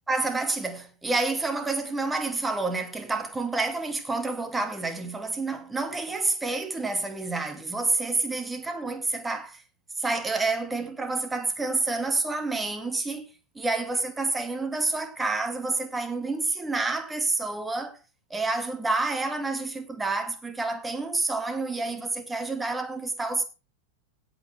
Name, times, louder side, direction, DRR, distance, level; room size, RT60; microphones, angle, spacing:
voice 1, 0.1-9.6 10.0-13.2 13.6-18.0 18.3-23.4, right 3 dB, 10° right, 2.1 m, -28 dB
17.0 x 8.6 x 3.4 m
figure-of-eight pair, 90°, 0 cm